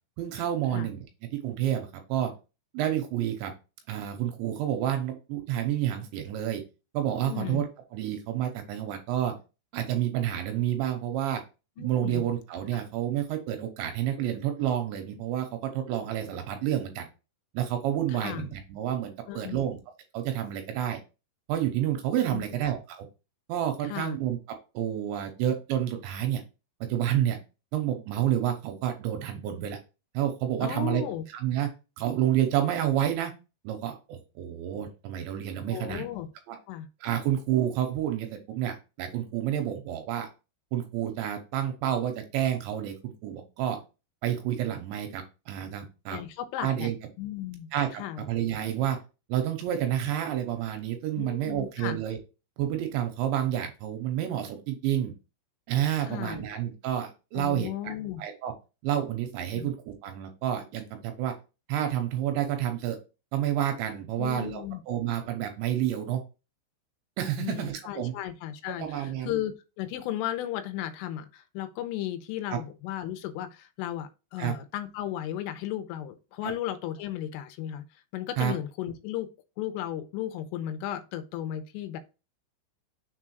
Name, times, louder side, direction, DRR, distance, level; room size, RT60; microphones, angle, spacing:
voice 1, 0.2-1.0 1.4-2.3 2.7-3.5 3.9-6.6 6.9-7.7 7.9-9.3 9.7-11.4 11.8-17.1 17.5-19.8 20.1-21.0 21.5-23.1 23.5-24.4 24.7-26.4 26.8-27.4 27.7-29.8 30.1-31.0 31.3-31.7 32.0-33.3 33.6-36.1 36.5-36.6 37.0-40.3 40.7-43.8 44.2-46.2 46.6-47.0 47.7-49.0 49.3-52.2 52.6-55.1 55.7-57.9 58.2-58.5 58.8-61.3 61.7-63.0 63.3-66.2 67.2-68.1 68.8-69.4 72.5-72.6 74.4-74.5 76.4-76.5 78.4-78.5, right 11 dB, 80° right, 3.1 m, -29 dB
voice 2, 7.2-7.6 11.8-12.2 18.2-18.5 19.3-19.6 22.3-22.5 23.8-24.2 30.6-31.2 35.6-36.3 36.7-36.9 46.1-46.9 47.2-48.2 51.2-52.0 56.0-56.5 57.4-58.2 59.6-59.7 64.2-64.8 67.4-77.8 78.1-79.3 79.6-82.0, left 12 dB, 85° left, 3.3 m, -35 dB
6.9 x 3.7 x 4.5 m
omnidirectional pair, 5.6 m